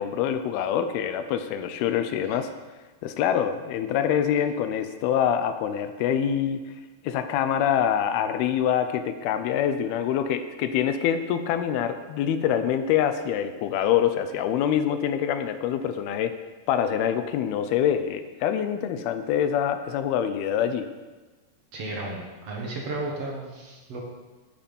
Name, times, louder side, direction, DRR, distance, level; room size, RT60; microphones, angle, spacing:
voice 1, 0.0-2.5 3.0-6.7 7.0-16.4 16.7-20.9, left 9 dB, 80° left, 9 dB, 2.4 m, -25 dB
voice 2, 21.7-24.0, right 2 dB, 60° right, -1 dB, 1.8 m, -33 dB
11.5 x 9.1 x 5.4 m, 1.2 s
omnidirectional pair, 4.9 m